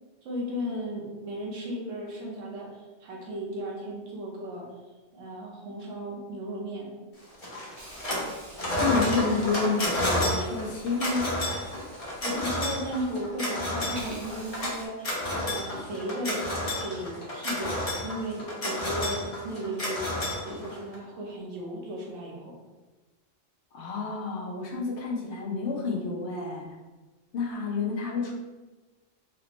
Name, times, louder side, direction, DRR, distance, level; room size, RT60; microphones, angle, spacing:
voice 1, 0.2-4.7 5.1-6.9 12.2-17.8 18.0-20.1 20.4-22.6, equal, 75° right, -2 dB, 1.2 m, -35 dB
sound 1, 7.4-8.3 8.6-21.0, left 1 dB, 35° left, 0.8 m, -30 dB
Hiss, 7.8-13.5 13.8-14.9, right 1 dB, 35° right, 0.5 m, -48 dB
voice 2, 8.8-11.4 23.7-26.8 27.3-28.3, left 4 dB, 65° left, 0 dB, 0.9 m, -29 dB
4.2 x 2.0 x 2.9 m, 1.2 s
omnidirectional pair, 1.3 m